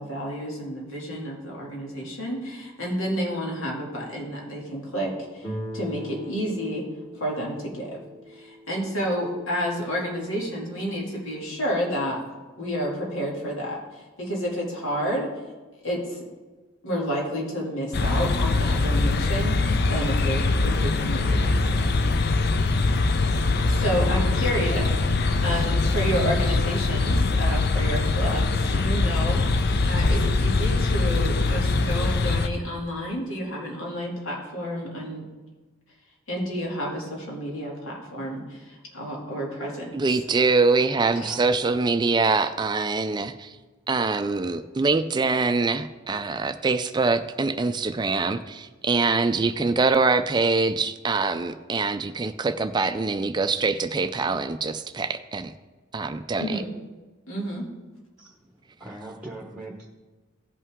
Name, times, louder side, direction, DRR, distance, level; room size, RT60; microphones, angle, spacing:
voice 1, 0.0-6.8 7.2-8.0 8.3-12.2 12.6-15.3 15.8-16.2 16.8-21.9 23.6-35.2 36.3-39.9 41.2-41.3 56.4-56.7 57.3-57.7, equal, 80° left, -2 dB, 2.5 m, -30 dB
Guitar, 5.4-10.2, equal, 15° left, 1.9 m, -40 dB
sound 1, 17.9-32.5, left 3 dB, 50° left, 0.5 m, -22 dB
voice 2, 39.9-43.6 43.9-55.5 55.9-56.6, right 3 dB, 20° right, 10 dB, 0.3 m, -24 dB
voice 3, 41.1-41.4 58.2-59.9, right 2 dB, 5° right, -1 dB, 1.0 m, -41 dB
16.5 x 5.5 x 3.6 m, 1.3 s
head